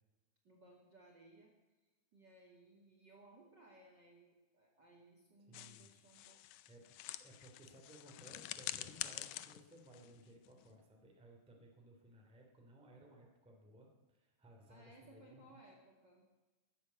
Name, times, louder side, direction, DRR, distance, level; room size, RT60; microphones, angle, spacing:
voice 1, 0.4-1.5 2.1-6.4 14.7-16.2, right 2 dB, 35° right, 0 dB, 2.5 m, -62 dB
sound 1, 5.5-10.8, left 14 dB, 90° left, 1.7 m, -47 dB
voice 2, 5.5-5.9 6.7-6.9 7.2-15.6, right 1 dB, ahead, 0 dB, 2.2 m, -60 dB
14.5 x 11.0 x 8.2 m, 1.1 s
omnidirectional pair, 4.2 m